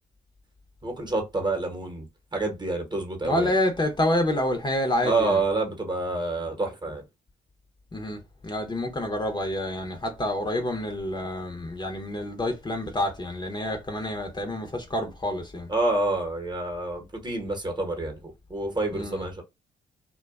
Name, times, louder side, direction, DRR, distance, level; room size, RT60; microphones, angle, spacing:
voice 1, 0.8-2.1 2.3-3.5 5.0-7.0 15.7-19.4, right 2 dB, 25° right, 1.0 m, -28 dB
voice 2, 3.2-5.4 7.9-15.7 18.9-19.2, left 1 dB, 25° left, 0.8 m, -28 dB
2.4 x 2.2 x 2.3 m
hypercardioid pair, 50°, 16 cm